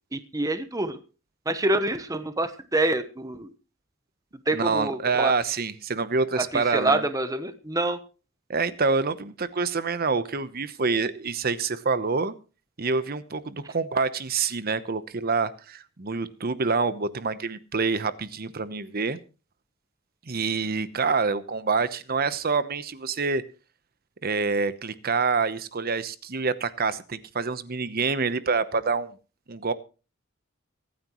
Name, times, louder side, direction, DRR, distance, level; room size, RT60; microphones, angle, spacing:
voice 1, 0.1-1.0 1.5-3.5 4.5-5.3 6.4-8.0, right 2 dB, 15° right, 10 dB, 0.9 m, -26 dB
voice 2, 4.5-7.0 8.5-12.3 12.8-19.2 20.3-23.4 24.2-29.1 29.5-29.7, right 4 dB, 45° right, 14 dB, 0.9 m, -26 dB
24.5 x 9.4 x 3.1 m, 0.34 s
head